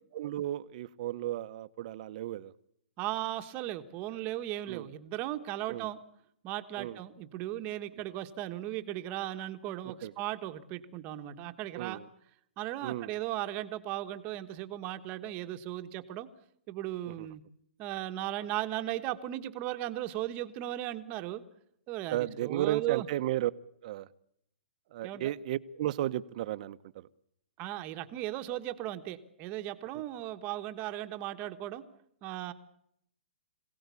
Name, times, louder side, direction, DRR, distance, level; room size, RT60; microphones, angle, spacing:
voice 1, 0.1-2.5 4.7-4.9 5.7-5.9 6.8-7.0 10.0-10.1 11.7-12.1 12.8-13.1 17.1-17.3 22.1-23.5 23.8-24.1 24.9-27.1, right 13 dB, 40° right, 13 dB, 0.9 m, -34 dB
voice 2, 3.0-6.0 6.4-12.0 12.6-16.3 16.7-17.4 17.8-21.4 21.9-23.1 25.0-25.3 27.6-31.8 32.2-32.5, right 14 dB, 25° right, 8 dB, 1.3 m, -37 dB
26.0 x 17.5 x 8.4 m, 0.73 s
hypercardioid pair, 160°, 6 cm